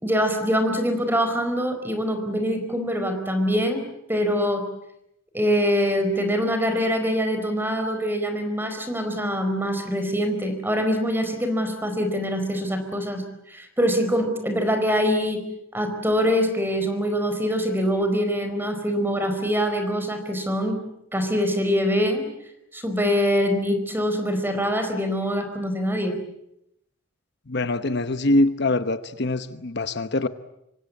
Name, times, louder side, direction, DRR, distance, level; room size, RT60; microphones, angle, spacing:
voice 1, 0.0-3.8 4.1-4.6 5.3-15.4 15.7-20.8 21.1-22.3 22.7-26.1, equal, 10° right, 7 dB, 4.5 m, -24 dB
voice 2, 27.5-30.3, left 2 dB, 55° left, 11 dB, 1.0 m, -23 dB
26.0 x 24.5 x 8.6 m, 0.81 s
head